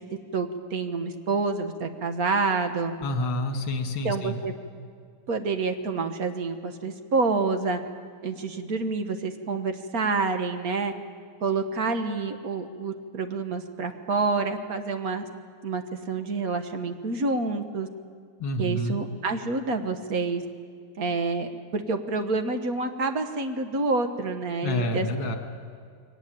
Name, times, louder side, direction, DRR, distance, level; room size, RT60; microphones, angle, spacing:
voice 1, 0.3-2.9 4.0-4.5 5.3-7.8 8.2-10.9 11.4-15.3 15.6-17.9 18.6-20.4 21.0-25.1, right 3 dB, 50° right, 7 dB, 1.5 m, -28 dB
voice 2, 3.0-4.4 18.4-19.0 24.6-25.4, left 1 dB, 70° left, 4 dB, 2.5 m, -28 dB
22.0 x 18.5 x 9.0 m, 2.2 s
omnidirectional pair, 2.3 m